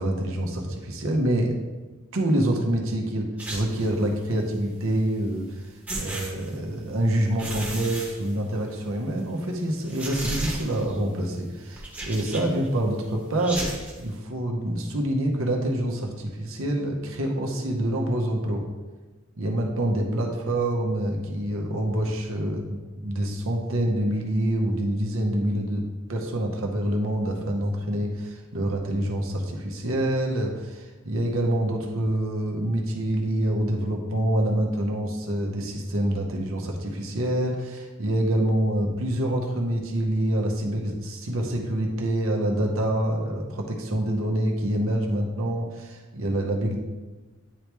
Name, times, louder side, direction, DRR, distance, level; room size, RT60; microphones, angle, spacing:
voice 1, 0.0-1.6 2.1-5.6 5.9-18.7 19.4-25.8 26.1-46.8, right 1 dB, 75° right, 1 dB, 0.9 m, -26 dB
sound 1, 3.4-4.0 5.4-5.5 5.9-6.9 7.3-8.8 9.2-9.3 9.9-11.0 11.7-12.7 13.4-14.0, right 1 dB, 10° right, 1.0 m, -34 dB
9.2 x 3.1 x 3.4 m, 1.2 s
head